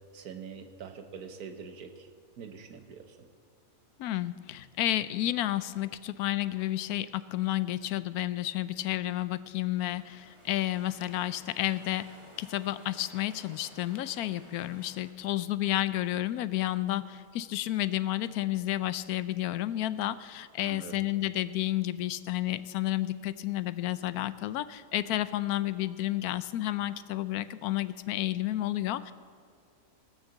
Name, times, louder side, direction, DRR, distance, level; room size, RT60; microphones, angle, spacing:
voice 1, 0.1-2.1 2.4-3.3 20.6-21.1, right 6 dB, 85° right, 7 dB, 1.5 m, -44 dB
voice 2, 4.0-12.1 12.4-29.1, left 14 dB, 85° left, 15 dB, 1.1 m, -31 dB
sound 1, 9.7-15.1, right 1 dB, 20° right, 1.7 m, -55 dB
18.0 x 6.6 x 7.2 m, 2.1 s
omnidirectional pair, 1.6 m